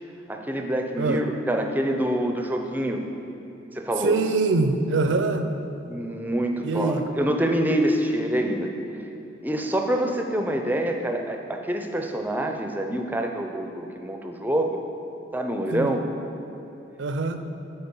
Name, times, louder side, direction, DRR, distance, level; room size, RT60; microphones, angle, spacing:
voice 1, 0.3-3.0 3.7-4.2 5.9-9.1 9.4-14.8 15.3-16.0, right 1 dB, 10° right, 3 dB, 0.4 m, -26 dB
voice 2, 4.0-5.5 6.6-7.0 15.7-16.0 17.0-17.4, right 3 dB, 75° right, 8 dB, 0.5 m, -24 dB
9.6 x 4.3 x 5.4 m, 2.9 s
head